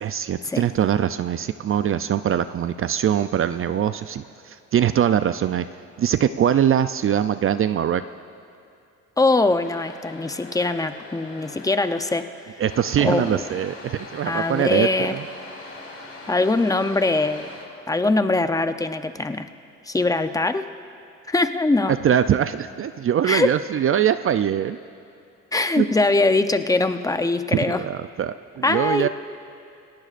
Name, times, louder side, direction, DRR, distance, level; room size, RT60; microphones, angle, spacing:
voice 1, 0.0-5.7 6.0-8.0 12.6-15.2 21.9-24.8 25.8-25.9 27.7-29.1, right 9 dB, 45° right, 11 dB, 0.5 m, -22 dB
voice 2, 9.2-12.2 13.0-13.4 14.3-15.1 16.3-17.5 17.9-19.5 19.9-20.7 21.3-22.0 23.3-23.5 25.5-27.8 28.6-29.1, left 2 dB, 10° left, 9 dB, 0.7 m, -22 dB
sound 1, 9.6-12.2 12.6-17.6, left 2 dB, 50° left, 4.2 m, -41 dB
28.5 x 17.5 x 2.5 m, 2.6 s
cardioid pair, 90°, 30 cm